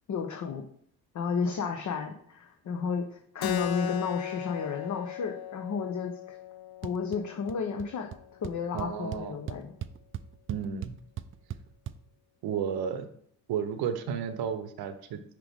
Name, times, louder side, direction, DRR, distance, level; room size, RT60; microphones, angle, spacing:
voice 1, 0.1-0.6 1.1-6.4 6.8-8.1 8.4-9.7, left 5 dB, 45° left, 4 dB, 0.8 m, -32 dB
Keyboard (musical), 3.4-8.5, left 11 dB, 60° left, 0.5 m, -38 dB
sound 1, 6.8-7.2 7.5-7.9 8.1-8.2 8.4-12.0, right 10 dB, 30° right, 0.4 m, -38 dB
voice 2, 8.7-9.4 10.5-11.0 12.4-13.1 13.5-15.2, right 7 dB, 60° right, 10 dB, 0.8 m, -32 dB
5.9 x 5.0 x 3.5 m, 0.63 s
hypercardioid pair, 60°, 42 cm